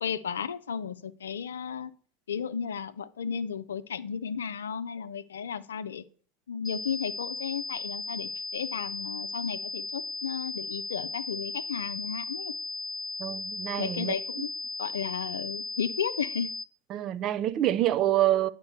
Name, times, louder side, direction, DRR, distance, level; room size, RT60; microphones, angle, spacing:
voice 1, 0.0-1.9 2.3-6.0 6.5-12.5 13.8-14.5 14.8-16.5, left 7 dB, 75° left, 0.5 m, -34 dB
sound 1, 6.6-16.6, left 2 dB, 5° left, 0.4 m, -36 dB
voice 2, 13.2-14.1 16.9-18.5, right 13 dB, 45° right, 0.6 m, -26 dB
9.1 x 5.2 x 6.8 m
figure-of-eight pair, 75°, 0 cm